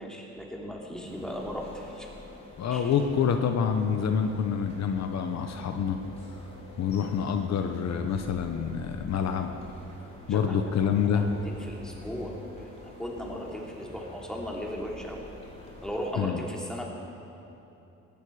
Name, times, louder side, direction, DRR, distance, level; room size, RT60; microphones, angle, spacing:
voice 1, 0.0-2.1 2.7-2.9 10.3-15.2 15.8-16.8, equal, ahead, -2 dB, 3.3 m, -37 dB
sound 1, 1.0-16.1, left 1 dB, 20° left, 4.1 m, -46 dB
voice 2, 2.6-6.0 6.8-9.5 10.3-11.2 16.2-16.4, left 7 dB, 60° left, 6 dB, 1.0 m, -27 dB
19.5 x 14.5 x 4.9 m, 2.9 s
cardioid pair, 90°, 30 cm